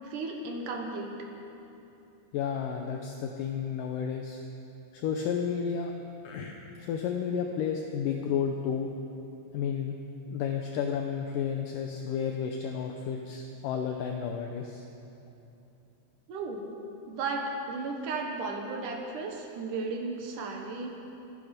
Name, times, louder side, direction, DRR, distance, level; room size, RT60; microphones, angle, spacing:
voice 1, 0.0-1.1 16.3-16.6 17.1-21.0, right 3 dB, 65° right, 2 dB, 2.4 m, -34 dB
voice 2, 2.3-4.4 4.9-5.9 6.2-8.9 9.5-9.9 10.3-14.8, left 7 dB, 80° left, 3 dB, 1.9 m, -32 dB
25.5 x 9.8 x 5.2 m, 2.9 s
omnidirectional pair, 4.8 m